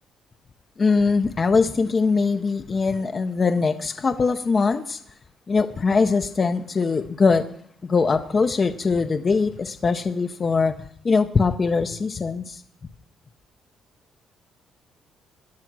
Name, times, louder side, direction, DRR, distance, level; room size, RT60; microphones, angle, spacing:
voice 1, 0.8-5.0 5.5-7.4 7.8-12.6, left 4 dB, 35° left, 8 dB, 0.7 m, -22 dB
17.0 x 10.5 x 6.1 m, 0.63 s
cardioid pair, 90°, 0 cm